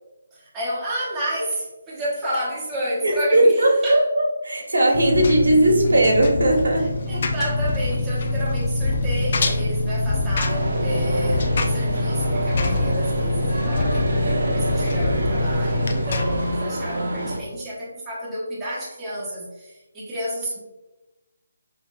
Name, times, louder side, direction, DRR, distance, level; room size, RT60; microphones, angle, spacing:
voice 1, 0.3-4.0 7.1-20.6, equal, 10° right, -8 dB, 1.0 m, -30 dB
voice 2, 3.0-7.2, right 1 dB, 85° right, 1 dB, 1.3 m, -18 dB
Engine, 4.9-16.5, left 2 dB, 40° left, 0.4 m, -24 dB
sound 1, 10.5-17.4, right 1 dB, 60° right, 0.9 m, -28 dB
5.7 x 3.0 x 2.4 m, 1.1 s
hypercardioid pair, 170°, 0 cm